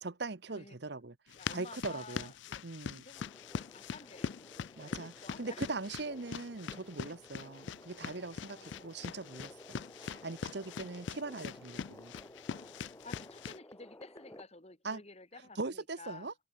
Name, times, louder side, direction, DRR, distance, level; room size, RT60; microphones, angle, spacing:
voice 1, 0.0-1.1 1.5-2.3 2.6-3.0 4.8-12.1 14.8-15.0 15.6-16.3, right 3 dB, 55° right, 0.9 m, -41 dB
voice 2, 0.5-1.0 1.3-2.6 3.0-3.2 3.7-5.7 8.4-8.9 10.8-10.9 13.0-16.3, left 3 dB, 30° left, 2.5 m, -53 dB
sound 1, 1.3-13.6, left 6 dB, 65° left, 0.4 m, -43 dB
sound 2, 3.1-14.4, left 1 dB, 15° left, 1.0 m, -55 dB
head